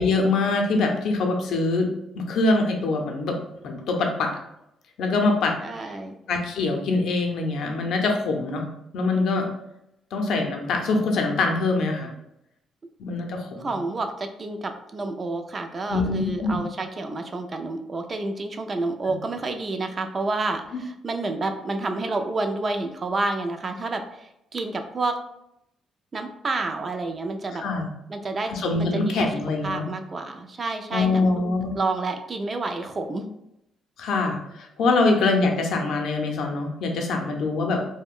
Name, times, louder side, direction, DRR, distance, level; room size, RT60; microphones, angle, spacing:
voice 1, 0.0-1.9 2.1-3.4 3.6-4.3 5.0-6.0 6.3-8.6 8.9-9.5 10.1-12.1 13.0-13.7 15.9-16.6 19.0-19.1 20.7-20.8 27.5-27.9 28.5-29.8 30.9-31.7 34.0-37.8, left 3 dB, 75° left, 2 dB, 0.5 m, -24 dB
voice 2, 5.6-6.2 13.6-25.2 26.1-27.6 28.1-29.3 29.6-31.4 31.8-33.3, right 3 dB, 35° right, 6 dB, 0.3 m, -29 dB
2.4 x 2.1 x 3.6 m, 0.81 s
cardioid pair, 90°, 0 cm